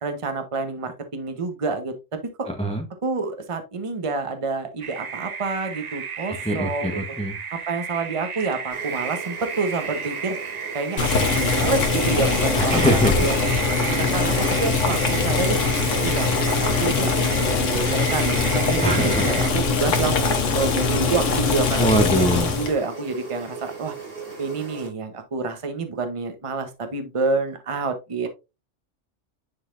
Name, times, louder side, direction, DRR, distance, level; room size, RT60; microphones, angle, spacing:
voice 1, 0.0-2.5 3.0-7.0 7.5-10.4 10.7-11.1 11.3-13.5 13.8-15.6 15.9-20.2 20.5-23.9 24.4-28.3, right 4 dB, 30° right, 7 dB, 0.9 m, -28 dB
voice 2, 2.5-2.8 6.4-7.4 12.5-13.3 18.8-19.3 21.8-22.5, equal, 5° left, 4 dB, 0.7 m, -22 dB
sound 1, 4.8-19.5, right 6 dB, 45° right, 0.6 m, -33 dB
sound 2, 8.7-24.9, right 5 dB, 85° right, 3.2 m, -37 dB
Boiling, 11.0-22.8, left 4 dB, 85° left, 1.4 m, -22 dB
9.7 x 4.0 x 2.5 m, 0.26 s
omnidirectional pair, 1.3 m